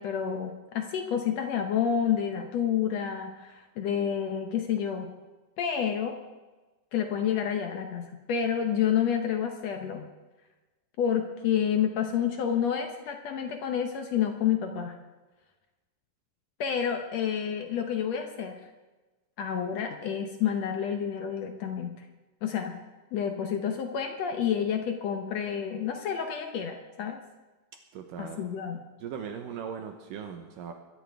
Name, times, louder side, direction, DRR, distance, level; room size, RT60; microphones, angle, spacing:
voice 1, 0.0-5.1 5.6-6.2 6.9-10.1 11.0-15.0 16.6-18.6 19.4-22.0 22.4-22.8 23.1-27.2 28.2-28.8, left 8 dB, 70° left, 4 dB, 1.7 m, -29 dB
voice 2, 27.9-28.5 29.0-30.7, right 7 dB, 75° right, 5 dB, 2.5 m, -39 dB
21.5 x 13.0 x 3.5 m, 1.2 s
omnidirectional pair, 4.0 m